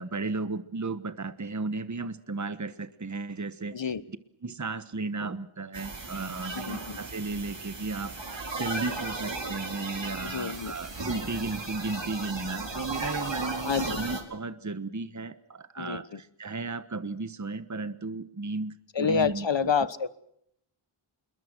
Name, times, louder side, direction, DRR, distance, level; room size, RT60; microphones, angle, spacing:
voice 1, 0.0-3.8 4.4-19.7, right 3 dB, 35° right, 13 dB, 1.2 m, -34 dB
voice 2, 3.7-4.0 6.5-7.0 10.2-10.7 13.6-14.0 15.8-16.2 18.9-20.1, left 6 dB, 60° left, 15 dB, 1.3 m, -28 dB
sound 1, 5.7-14.2, right 3 dB, 60° right, 4.4 m, -36 dB
27.0 x 22.0 x 6.2 m, 0.73 s
wide cardioid pair, 45°, 50 cm